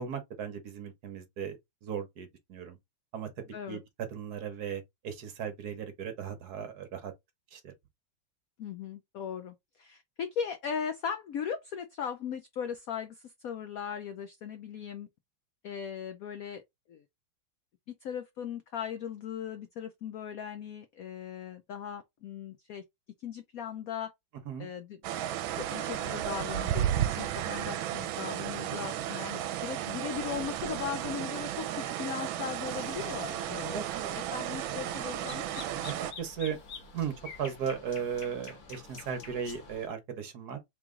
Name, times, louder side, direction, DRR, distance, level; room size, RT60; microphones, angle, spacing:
voice 1, 0.0-2.8 3.1-3.8 4.1-7.1 7.5-7.7 24.5-24.7 33.6-34.2 35.7-36.6 36.9-40.6, right 7 dB, 60° right, 1.3 m, -37 dB
voice 2, 8.6-15.1 15.6-16.6 16.9-17.0 17.9-22.8 23.2-24.1 24.6-25.0 25.6-33.8 34.3-35.5, left 8 dB, 85° left, 0.7 m, -38 dB
sound 1, 25.0-36.1, right 11 dB, 80° right, 1.3 m, -34 dB
sound 2, 32.6-39.9, left 4 dB, 50° left, 1.4 m, -48 dB
3.7 x 3.0 x 3.6 m
omnidirectional pair, 2.1 m